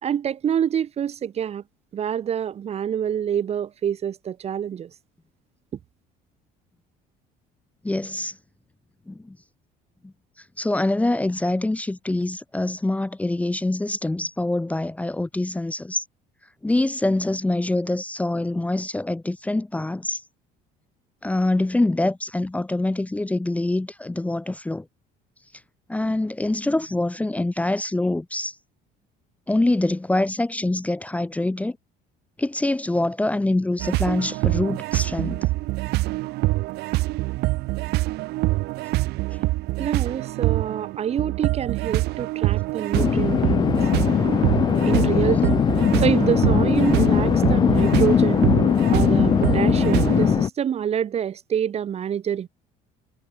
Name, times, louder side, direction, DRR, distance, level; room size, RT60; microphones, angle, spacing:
voice 1, 0.0-1.6 1.9-4.9 39.8-44.2 44.8-45.6 46.0-48.5 48.9-52.5, right 9 dB, 40° right, 1.0 m, -26 dB
voice 2, 7.8-8.3 9.1-9.4 10.6-16.0 16.6-20.2 21.2-24.9 25.9-28.6 29.5-31.8 32.4-35.5, left 2 dB, 10° left, 0.8 m, -25 dB
sound 1, 33.8-50.4, right 19 dB, 75° right, 1.5 m, -25 dB
sound 2, 42.9-50.5, left 8 dB, 25° left, 0.3 m, -20 dB
cardioid pair, 120°, 17 cm